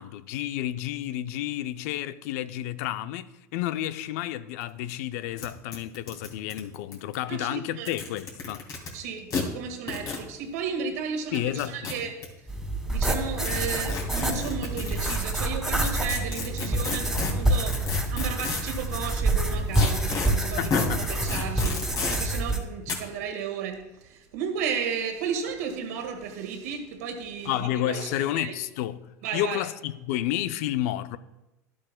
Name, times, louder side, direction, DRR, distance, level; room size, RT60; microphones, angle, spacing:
voice 1, 0.0-8.7 11.3-12.1 20.6-21.1 27.5-31.2, left 13 dB, 70° left, 0.4 m, -31 dB
sound 1, 4.6-4.7 4.9-5.0 5.4-5.5 5.7-7.1 7.7-8.9 9.3-9.4 9.9-10.2 11.3-12.2 13.4-15.2 15.8-18.8 19.7-20.3 20.7-20.9 21.3-22.2 22.9-23.0, left 4 dB, 45° left, 2.7 m, -31 dB
voice 2, 7.3-7.9 8.9-12.1 12.8-17.8 18.1-20.7 21.1-28.5 29.2-29.6, right 6 dB, 75° right, 1.6 m, -34 dB
sound 2, 12.5-22.6, right 1 dB, 5° right, 2.1 m, -27 dB
12.5 x 8.4 x 2.2 m
hypercardioid pair, 95°, 9 cm